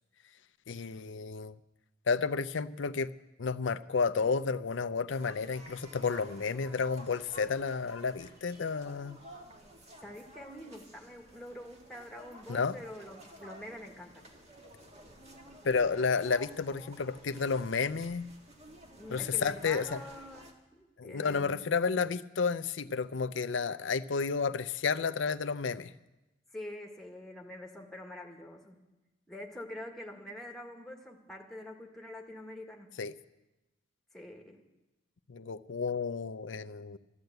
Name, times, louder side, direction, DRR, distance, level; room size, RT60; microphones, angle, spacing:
voice 1, 0.7-1.6 2.1-3.1 3.4-9.2 12.5-12.8 15.6-18.3 19.1-20.0 21.0-25.9 33.0-33.1 35.3-37.0, left 5 dB, 70° left, 11 dB, 0.6 m, -31 dB
sound 1, 5.1-20.5, right 1 dB, 35° right, 1.8 m, -53 dB
voice 2, 10.0-14.3 18.9-21.7 26.5-28.8 29.3-33.1 34.1-34.6, left 1 dB, ahead, 1 dB, 1.7 m, -46 dB
13.5 x 12.0 x 7.9 m, 1.0 s
head